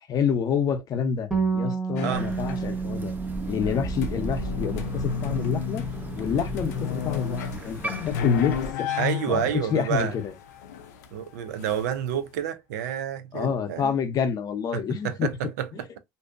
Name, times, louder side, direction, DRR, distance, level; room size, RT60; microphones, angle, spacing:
voice 1, 0.1-3.1 3.5-5.8 6.2-7.8 8.1-8.9 9.3-10.3 13.3-15.3 15.7-15.8, left 7 dB, 45° left, 0.7 m, -28 dB
Bass guitar, 1.3-7.6, right 5 dB, 5° right, 0.9 m, -32 dB
sound 1, 2.0-3.0 3.3-12.2, left 8 dB, 80° left, 0.4 m, -32 dB
Crow, 2.1-8.7, right 2 dB, 20° right, 0.5 m, -36 dB
voice 2, 9.0-10.1 11.1-14.0 14.7-16.0, right 9 dB, 80° right, 0.5 m, -29 dB
2.6 x 2.2 x 2.4 m
hypercardioid pair, 80°, 9 cm